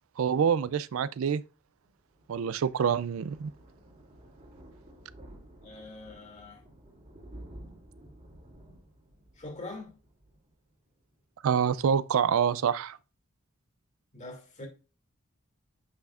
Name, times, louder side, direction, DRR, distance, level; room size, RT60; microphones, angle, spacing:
voice 1, 0.2-1.4 2.3-3.5 11.4-13.0, right 7 dB, 70° right, 0.4 m, -26 dB
Thunder, 1.8-11.2 11.5-11.8 12.1-12.2 12.4-12.5, right 1 dB, 35° right, 2.5 m, -52 dB
voice 2, 5.6-6.6 9.4-10.0 14.1-14.7, left 2 dB, 35° left, 2.4 m, -43 dB
8.0 x 5.9 x 2.4 m
head